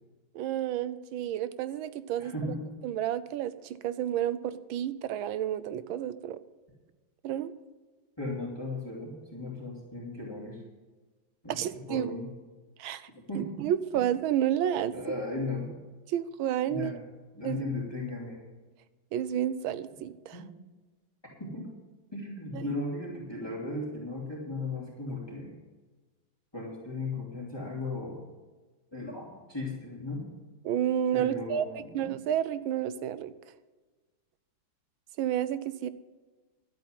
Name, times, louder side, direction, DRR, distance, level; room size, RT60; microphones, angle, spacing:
voice 1, 0.3-2.3 2.8-6.4 7.2-7.5 11.5-12.1 12.8-13.1 13.3-14.9 16.1-16.9 17.4-17.6 19.1-20.4 22.5-22.7 30.6-33.3 35.2-35.9, right 10 dB, 90° right, 15 dB, 1.5 m, -30 dB
voice 2, 2.2-2.6 8.2-10.6 11.4-11.6 11.9-12.3 13.3-13.5 14.9-15.7 16.7-17.0 17.3-18.4 20.3-20.5 21.4-21.7 22.1-25.5 26.5-28.2 28.9-30.2 31.1-31.9, left 2 dB, 10° left, -5 dB, 3.2 m, -36 dB
12.0 x 8.4 x 7.6 m, 1.3 s
omnidirectional pair, 2.1 m